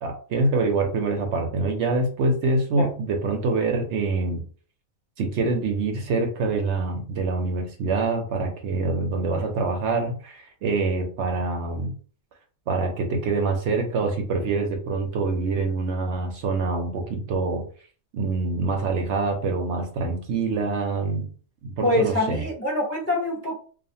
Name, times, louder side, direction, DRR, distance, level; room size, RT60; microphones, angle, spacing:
voice 1, 0.0-4.4 5.2-11.9 12.7-17.6 18.1-21.3 21.6-22.5, right 3 dB, 65° right, 3 dB, 0.8 m, -25 dB
voice 2, 21.8-23.5, left 1 dB, 25° left, -2 dB, 0.3 m, -24 dB
2.4 x 2.4 x 2.7 m, 0.41 s
omnidirectional pair, 1.4 m